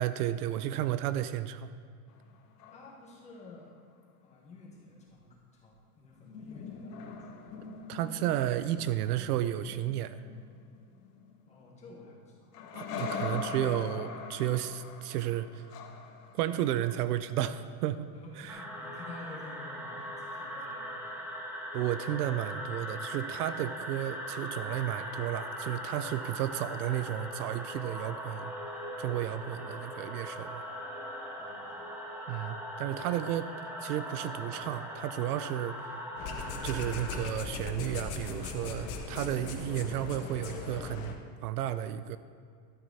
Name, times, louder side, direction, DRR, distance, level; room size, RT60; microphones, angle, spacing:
voice 1, 0.0-1.7 7.9-10.2 12.7-15.7 16.3-18.6 21.7-28.5 29.0-30.6 32.3-33.5 33.8-35.9 36.6-41.2 41.4-42.2, right 12 dB, 70° right, 13 dB, 0.6 m, -33 dB
sound 1, 2.1-3.4 6.1-12.0 12.5-17.6 20.0-20.1, left 5 dB, 80° left, 1.5 m, -42 dB
voice 2, 2.7-3.7 4.2-7.5 8.0-8.3 9.0-9.3 11.5-12.6 13.3-13.7 18.1-21.3 31.4-31.9 32.4-32.5 33.1-33.3, left 3 dB, 15° left, -4 dB, 1.7 m, -51 dB
sound 2, 18.5-37.3, equal, 5° right, 0.7 m, -40 dB
sound 3, 36.2-41.1, left 4 dB, 35° left, 0.9 m, -39 dB
12.5 x 8.9 x 4.1 m, 2.2 s
supercardioid pair, 170°, 47 cm